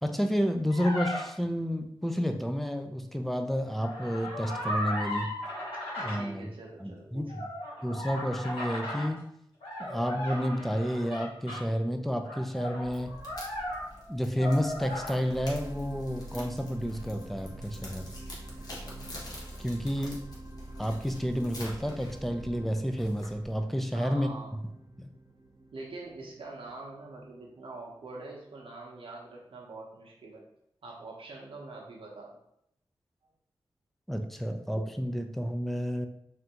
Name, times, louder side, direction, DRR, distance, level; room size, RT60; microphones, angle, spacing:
voice 1, 0.0-5.3 6.0-6.5 6.8-7.4 7.8-9.2 9.8-13.2 14.1-18.1 19.6-20.2 20.8-24.3 25.0-25.1 34.1-36.1, equal, ahead, 6 dB, 0.4 m, -30 dB
sound 1, 0.7-1.2 3.7-6.2 7.3-9.1 9.6-11.6 12.2-14.1 14.4-15.1, left 1 dB, 85° left, 1.5 m, -36 dB
voice 2, 6.1-7.4 23.9-24.5 25.7-30.4 30.8-32.4, right 2 dB, 70° right, -2 dB, 0.7 m, -44 dB
sound 2, 12.8-23.6, left 1 dB, 45° left, 1.0 m, -47 dB
sound 3, 15.2-27.6 28.2-28.3, right 1 dB, 35° right, 0.7 m, -46 dB
3.3 x 2.5 x 2.8 m, 0.75 s
cardioid pair, 60°, 9 cm